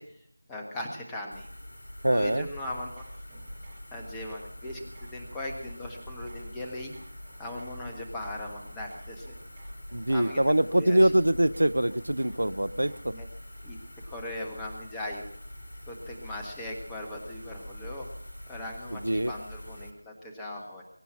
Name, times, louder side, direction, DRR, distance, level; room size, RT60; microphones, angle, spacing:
voice 1, 0.0-1.5 2.1-3.0 3.9-6.9 7.4-9.3 10.1-10.4 10.7-11.1 13.1-13.3 13.6-13.8 14.0-15.3 15.9-18.1 18.5-20.8, left 1 dB, 5° left, 0 dB, 1.5 m, -39 dB
sound 1, 1.3-19.9, equal, 55° left, 5.5 m, -44 dB
voice 2, 2.0-2.5 9.9-13.1 19.0-19.3, right 1 dB, 70° right, 17 dB, 0.7 m, -24 dB
sound 2, 2.6-13.2, right 1 dB, 20° right, 5.1 m, -56 dB
22.5 x 9.3 x 5.9 m, 0.71 s
figure-of-eight pair, 170°, 0 cm